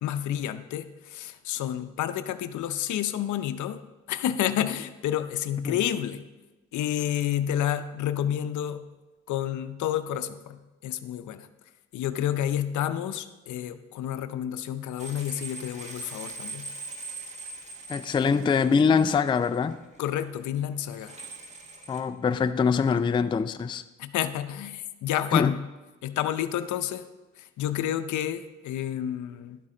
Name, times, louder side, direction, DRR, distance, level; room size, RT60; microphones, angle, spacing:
voice 1, 0.0-3.8 4.1-6.2 6.7-8.8 9.3-11.5 11.9-16.7 20.0-21.1 24.0-25.6 26.0-27.1 27.6-29.6, left 11 dB, 75° left, 0.6 m, -30 dB
sound 1, 15.0-20.5 20.7-22.0, right 3 dB, 25° right, 1.5 m, -42 dB
voice 2, 17.9-19.8 21.9-23.8 25.3-25.5, left 5 dB, 15° left, 0.3 m, -23 dB
11.0 x 7.4 x 3.8 m
cardioid pair, 90°, 30 cm